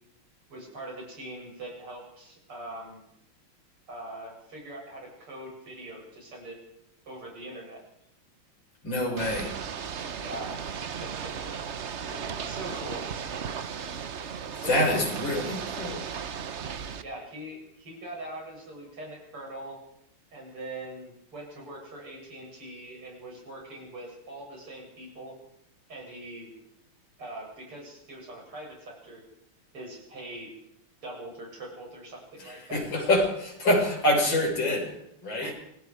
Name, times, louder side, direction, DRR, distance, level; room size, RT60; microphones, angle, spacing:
voice 1, 0.5-3.0 3.9-6.6 7.1-7.8 10.2-11.6 12.1-13.0 14.6-15.0 17.0-19.8 20.3-25.3 25.9-26.5 27.2-29.2 29.7-30.5 31.0-32.8 35.4-35.5, right 1 dB, 80° right, -1 dB, 8.6 m, -42 dB
voice 2, 8.8-9.6 14.2-16.1 32.4-35.5, left 1 dB, 55° left, 1 dB, 6.4 m, -27 dB
Ocean / Boat Water vehicle, 9.2-17.0, right 7 dB, 55° right, 0.8 m, -36 dB
26.5 x 19.5 x 4.9 m, 0.77 s
omnidirectional pair, 2.4 m